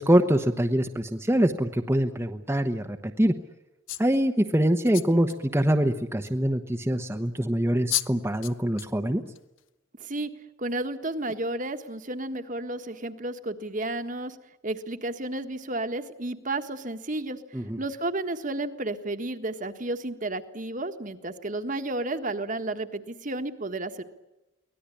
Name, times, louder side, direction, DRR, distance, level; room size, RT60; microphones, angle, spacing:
voice 1, 0.0-3.3 4.0-9.2 17.5-17.8, right 1 dB, 10° right, 5 dB, 1.0 m, -24 dB
sound 1, 3.9-4.2 4.9-5.4 6.3-6.4 7.5-7.6 7.9-8.1 8.4-8.9 9.4-9.6, left 14 dB, 80° left, 0.9 m, -31 dB
voice 2, 10.0-10.3 10.6-14.4 14.6-17.4 17.8-24.0, right 2 dB, 40° right, 8 dB, 1.6 m, -32 dB
24.0 x 18.5 x 10.0 m, 0.96 s
head